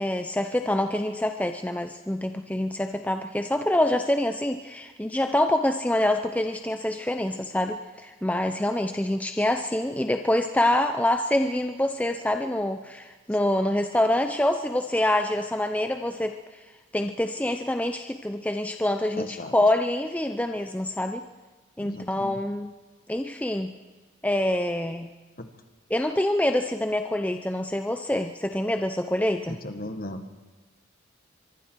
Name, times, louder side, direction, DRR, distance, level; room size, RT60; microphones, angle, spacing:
voice 1, 0.0-16.4 16.9-21.2 21.8-22.7 23.1-23.8 24.2-25.1 25.9-29.6, left 1 dB, 5° left, 6 dB, 0.6 m, -26 dB
voice 2, 19.2-19.5 21.8-22.4 25.4-25.5 29.5-30.2, left 1 dB, 45° left, 7 dB, 1.6 m, -36 dB
24.5 x 23.5 x 4.6 m, 1.3 s
head